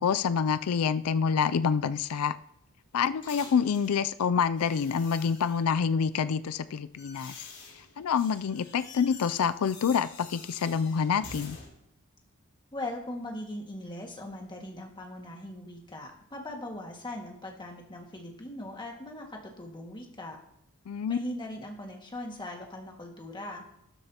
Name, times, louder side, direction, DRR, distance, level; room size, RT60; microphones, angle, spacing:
voice 1, 0.0-2.3 2.9-7.5 8.0-11.6 20.9-21.2, left 6 dB, 80° left, 14 dB, 0.4 m, -27 dB
sound 1, 1.6-4.0 4.6-5.8 6.5-11.7, left 4 dB, 55° left, 3.4 m, -48 dB
voice 2, 12.7-20.4 21.1-23.6, left 1 dB, 20° left, 1 dB, 1.9 m, -40 dB
13.0 x 12.5 x 2.9 m, 0.79 s
head